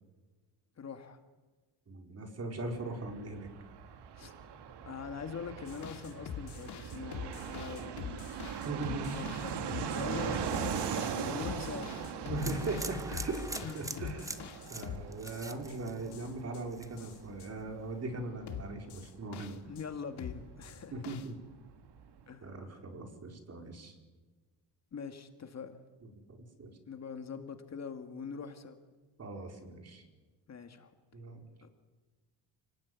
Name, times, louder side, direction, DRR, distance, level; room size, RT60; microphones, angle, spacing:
voice 1, 0.8-1.2 4.1-4.3 4.8-8.6 9.0-12.3 13.6-14.0 14.6-15.0 19.7-20.9 22.3-22.5 24.9-25.8 26.9-28.8 30.5-30.9 31.6-31.7, left 6 dB, 35° left, 7 dB, 2.1 m, -43 dB
voice 2, 1.9-3.5 8.6-9.2 12.2-14.4 14.7-19.6 20.9-21.4 22.4-23.9 26.0-26.7 29.2-30.0 31.1-31.4, right 2 dB, 35° right, 4 dB, 4.6 m, -39 dB
Fixed-wing aircraft airplane, 2.6-21.0 21.3-21.4 21.6-22.3, right 7 dB, 70° right, 2.7 m, -40 dB
sound 1, 5.7-15.8 16.1-16.6 17.0-17.5 18.5-19.8 20.2-21.3, left 9 dB, 65° left, 2.3 m, -45 dB
sound 2, 12.4-16.4 16.7-17.2, right 1 dB, 5° right, 1.4 m, -42 dB
29.5 x 19.5 x 9.6 m, 1.3 s
cardioid pair, 135°, 43 cm